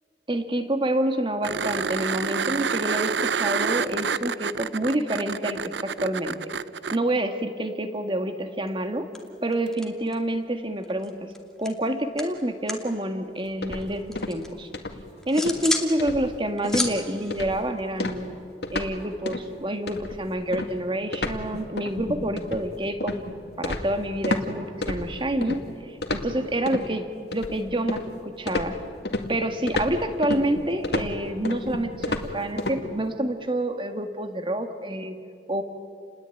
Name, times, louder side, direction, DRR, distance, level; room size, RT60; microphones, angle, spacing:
voice 1, 0.3-6.5 6.9-9.1 9.4-11.3 11.6-14.7 15.3-18.3 18.7-23.2 23.6-27.0 27.3-28.8 29.3-35.2 35.5-35.6, right 1 dB, 30° right, 7 dB, 1.8 m, -28 dB
sound 1, 1.4-7.0 9.7-9.8, right 6 dB, 80° right, 0.7 m, -28 dB
sound 2, 8.7-8.9 9.1-10.4 10.6-12.9 13.2-14.5 14.9-15.9 16.3-18.4, left 2 dB, 5° left, 2.4 m, -33 dB
sound 3, 13.6-14.5 14.7-15.0 15.4-15.6 16.0-16.4 16.6-16.9 17.3-17.6 18.0-19.0 19.3-19.5 19.9-24.5 24.8-25.6 26.0-26.9 27.3-28.1 28.5-32.8, left 2 dB, 65° left, 2.2 m, -31 dB
30.0 x 21.0 x 9.2 m, 2.4 s
head